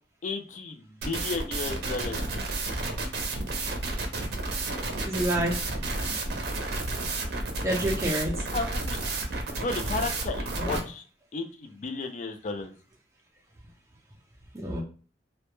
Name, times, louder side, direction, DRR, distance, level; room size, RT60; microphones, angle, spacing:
voice 1, 0.2-2.2 8.5-9.0 9.6-11.0 11.3-12.7, left 3 dB, 45° left, 7 dB, 0.4 m, -33 dB
sound 1, 1.0-10.8, right 2 dB, 65° right, 0.6 m, -31 dB
voice 2, 5.0-5.6 6.1-6.2 7.6-8.4 10.6-10.8 14.5-14.8, right 1 dB, 15° right, -3 dB, 0.4 m, -28 dB
2.1 x 2.0 x 3.0 m, 0.39 s
head